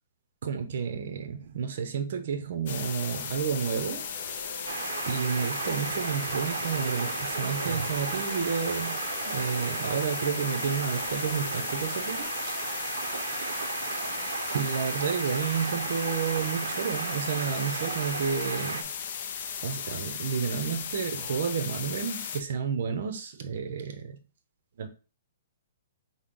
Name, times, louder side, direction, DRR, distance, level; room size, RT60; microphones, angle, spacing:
voice 1, 0.4-4.0 5.1-8.9 9.3-12.5 14.5-18.9 19.6-24.2 24.8-24.9, right 6 dB, 45° right, 0.7 m, -31 dB
sound 1, 2.7-22.4, left 7 dB, 35° left, 0.4 m, -36 dB
sound 2, 2.7-12.2, right 2 dB, 25° right, 1.2 m, -45 dB
sound 3, 4.7-18.8, right 6 dB, 85° right, 0.5 m, -35 dB
6.2 x 2.1 x 3.7 m
hypercardioid pair, 180°, 0 cm